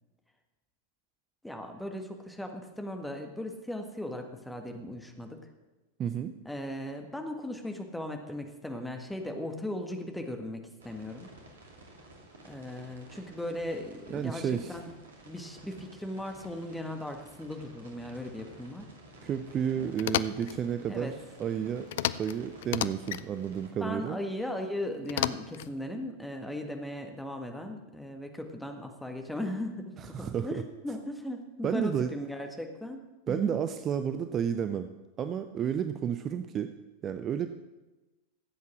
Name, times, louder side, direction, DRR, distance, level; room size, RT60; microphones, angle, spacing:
voice 1, 1.4-5.4 6.4-11.3 12.4-14.9 15.2-18.9 19.8-20.0 20.9-21.1 23.8-33.0 33.3-33.5, left 1 dB, 5° left, 4 dB, 1.6 m, -37 dB
voice 2, 6.0-6.3 14.1-14.8 19.2-21.1 21.4-21.9 22.2-24.2 30.0-30.6 31.6-32.1 33.3-34.9 35.2-36.7 37.0-37.5, right 8 dB, 30° right, 9 dB, 0.6 m, -31 dB
sound 1, 10.8-23.7, right 1 dB, 65° right, 2.7 m, -52 dB
sound 2, 20.0-20.6 21.9-22.4 22.6-23.2 25.1-25.7, left 13 dB, 55° left, 0.4 m, -31 dB
15.5 x 8.2 x 6.1 m, 1.1 s
figure-of-eight pair, 90°, 0 cm